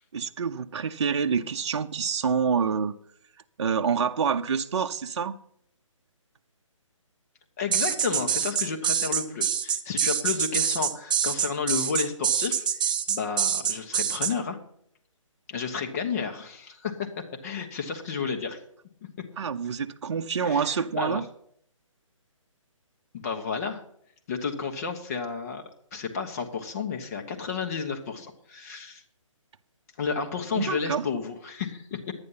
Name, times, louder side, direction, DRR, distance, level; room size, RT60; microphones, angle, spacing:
voice 1, 0.1-2.9 3.6-5.4 19.4-21.2 30.5-31.1, right 6 dB, 55° right, 0.6 m, -27 dB
voice 2, 7.6-14.6 15.5-18.6 20.4-21.2 23.1-23.8 24.3-25.6 25.9-29.0 30.0-32.1, left 5 dB, 30° left, 1.2 m, -32 dB
sound 1, 7.7-14.3, right 8 dB, 15° right, 0.4 m, -25 dB
11.0 x 9.6 x 5.7 m
hypercardioid pair, 165°, 17 cm